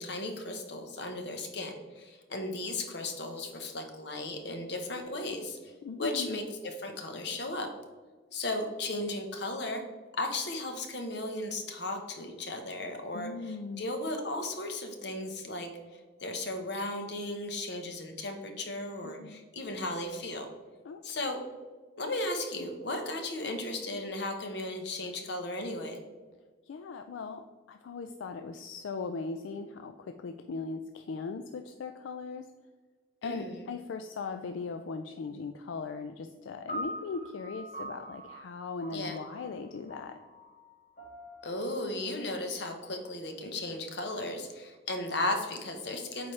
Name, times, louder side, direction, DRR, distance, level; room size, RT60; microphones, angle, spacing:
voice 1, 0.0-5.7 6.0-7.7 8.3-9.8 10.1-15.7 16.2-20.5 21.0-21.4 22.0-26.0 33.2-33.7 38.9-39.2 41.4-46.3, left 2 dB, 60° left, 4 dB, 1.0 m, -35 dB
voice 2, 5.8-6.4 13.1-13.8 19.0-19.5 20.8-21.0 26.7-32.5 33.2-40.2, left 4 dB, 85° left, 7 dB, 0.4 m, -39 dB
sound 1, 36.7-43.1, right 1 dB, 45° left, 1.7 m, -44 dB
8.1 x 4.3 x 3.2 m, 1.4 s
head